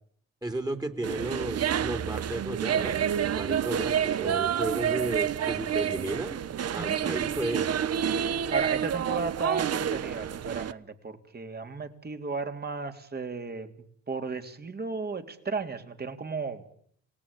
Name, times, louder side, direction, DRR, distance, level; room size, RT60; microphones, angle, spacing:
voice 1, 0.4-6.4 6.7-7.7, right 1 dB, 15° right, 6 dB, 3.1 m, -33 dB
sound 1, 1.0-10.7, right 9 dB, 55° right, 1.2 m, -29 dB
voice 2, 6.8-7.2 8.5-13.7 14.1-16.7, right 4 dB, 30° right, 7 dB, 3.4 m, -34 dB
27.5 x 19.0 x 8.9 m, 0.65 s
cardioid pair, 90°, 30 cm